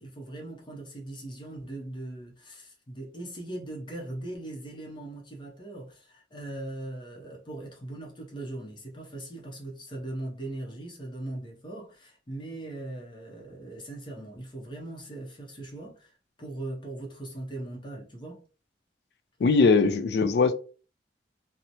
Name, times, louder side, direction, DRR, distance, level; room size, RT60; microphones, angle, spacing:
voice 1, 0.0-18.4, right 1 dB, 25° left, 0.7 m, -40 dB
voice 2, 19.4-20.5, left 4 dB, 60° left, 0.3 m, -21 dB
3.0 x 2.0 x 2.6 m
head